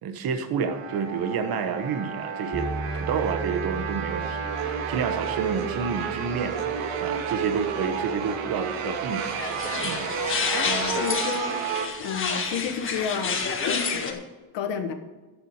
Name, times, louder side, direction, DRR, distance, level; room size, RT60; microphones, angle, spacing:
voice 1, 0.0-2.7 2.9-6.6 7.0-10.1, right 6 dB, 45° right, 8 dB, 1.2 m, -29 dB
sound 1, 0.7-11.9, right 7 dB, 75° right, 1.6 m, -31 dB
sound 2, 2.5-10.7, right 2 dB, 5° right, 0.6 m, -39 dB
sound 3, 9.1-14.1, left 5 dB, 25° left, 1.6 m, -29 dB
voice 2, 10.6-11.6 12.0-14.2 14.5-14.9, left 7 dB, 60° left, 6 dB, 1.6 m, -31 dB
12.0 x 7.6 x 6.6 m, 1.2 s
cardioid pair, 150°, 50 cm